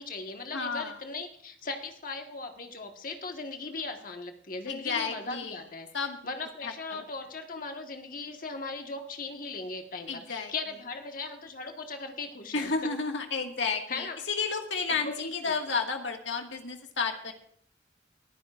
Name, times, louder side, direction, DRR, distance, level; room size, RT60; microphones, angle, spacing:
voice 1, 0.0-5.9 6.2-12.7 13.7-14.2 14.9-15.7, left 3 dB, 50° left, 4 dB, 1.5 m, -38 dB
voice 2, 0.5-1.0 4.7-5.6 5.9-6.2 6.6-7.0 10.1-10.5 12.5-17.3, left 4 dB, 90° left, 3 dB, 1.8 m, -32 dB
23.0 x 15.0 x 2.5 m, 0.63 s
head